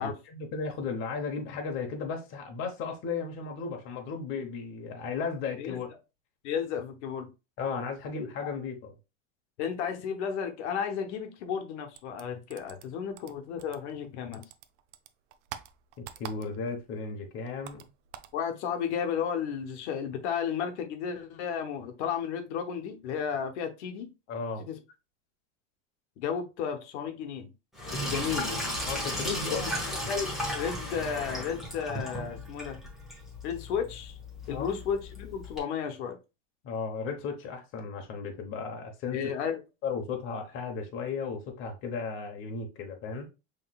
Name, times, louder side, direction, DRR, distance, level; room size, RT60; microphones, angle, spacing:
voice 1, 0.0-5.9 7.6-8.9 16.0-17.8 24.3-24.6 28.9-29.7 34.5-34.7 36.6-39.2 39.8-43.3, left 5 dB, 35° left, 0.9 m, -35 dB
voice 2, 6.4-7.3 9.6-14.4 18.3-24.1 24.6-24.8 26.2-27.5 27.9-28.6 29.5-29.6 29.9-32.8 33.4-34.2 34.5-36.2 39.1-39.6, left 7 dB, 75° left, 1.0 m, -33 dB
sound 1, 11.9-14.1 14.3-16.8 17.1-18.4, right 11 dB, 75° right, 0.6 m, -46 dB
Sink (filling or washing), 27.7-35.6, left 1 dB, ahead, 0.9 m, -35 dB
5.7 x 3.2 x 2.3 m
supercardioid pair, 165°, 35 cm